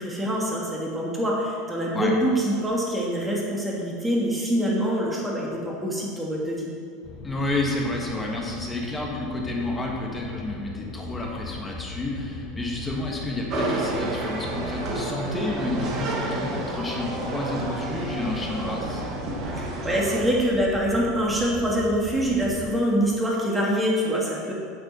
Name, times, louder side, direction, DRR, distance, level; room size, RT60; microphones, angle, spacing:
voice 1, 0.0-6.7 19.6-24.5, equal, 10° right, -3 dB, 2.3 m, -25 dB
sound 1, 7.0-22.7, left 3 dB, 50° left, 1.1 m, -39 dB
voice 2, 7.2-19.0, left 2 dB, 20° left, -1 dB, 1.7 m, -30 dB
sound 2, 13.5-20.2, right 2 dB, 45° right, 1.6 m, -30 dB
7.8 x 7.7 x 4.4 m, 2.2 s
hypercardioid pair, 80°, 0 cm